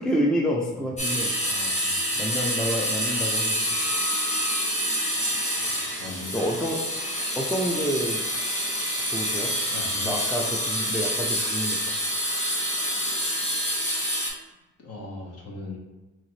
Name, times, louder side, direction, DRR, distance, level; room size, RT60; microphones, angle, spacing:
voice 1, 0.0-1.3 2.2-3.6 6.3-6.9 7.4-8.2 9.1-9.6 10.1-11.8, equal, ahead, 0 dB, 0.4 m, -28 dB
sound 1, 1.0-14.3, equal, 20° left, 1.1 m, -27 dB
voice 2, 1.4-2.2 5.8-6.4 9.7-10.1 14.8-15.8, left 3 dB, 50° left, -1 dB, 1.2 m, -40 dB
3.7 x 2.9 x 3.1 m, 1.1 s
cardioid pair, 90°, 32 cm